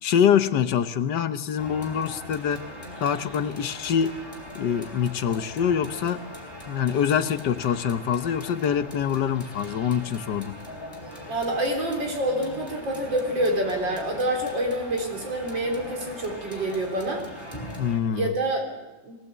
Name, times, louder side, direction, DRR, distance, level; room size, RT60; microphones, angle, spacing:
voice 1, 0.0-2.6 3.0-4.1 4.5-6.2 6.7-10.6 17.8-18.3, left 8 dB, 70° left, 11 dB, 1.5 m, -25 dB
sound 1, 1.6-18.0, left 1 dB, 15° left, 3.4 m, -41 dB
voice 2, 11.3-17.2 18.1-19.2, right 1 dB, 80° right, 2 dB, 4.3 m, -27 dB
21.5 x 18.0 x 8.1 m, 1.1 s
omnidirectional pair, 2.0 m